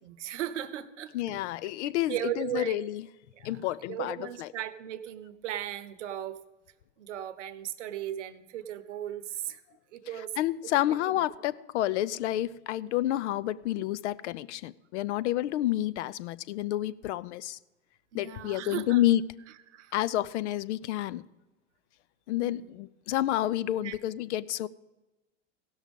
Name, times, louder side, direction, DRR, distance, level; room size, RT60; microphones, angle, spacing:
voice 1, 0.0-1.1 2.1-2.8 3.4-6.4 7.0-9.6 9.9-10.4 10.9-11.2 18.1-19.0 19.7-19.9 22.4-22.8 23.8-24.0, right 11 dB, 75° right, 0.9 m, -37 dB
voice 2, 1.1-3.0 3.4-4.5 10.4-17.6 18.1-19.2 19.9-21.2 22.3-24.7, left 13 dB, 70° left, 0.6 m, -29 dB
16.5 x 6.3 x 5.3 m
hypercardioid pair, 100°, 36 cm